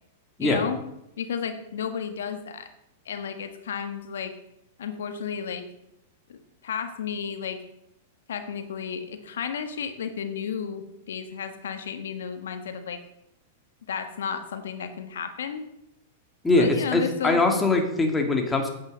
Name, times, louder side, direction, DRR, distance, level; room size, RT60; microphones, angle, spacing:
voice 1, 0.4-0.8 1.2-2.7 3.0-4.4 4.8-5.6 6.3-6.4 6.6-7.6 8.3-13.0 13.9-15.6 16.6-17.4, left 7 dB, 85° left, 8 dB, 1.4 m, -32 dB
voice 2, 16.4-18.7, left 2 dB, 10° left, 2 dB, 2.3 m, -22 dB
8.8 x 8.7 x 7.4 m, 0.84 s
hypercardioid pair, 130°, 0 cm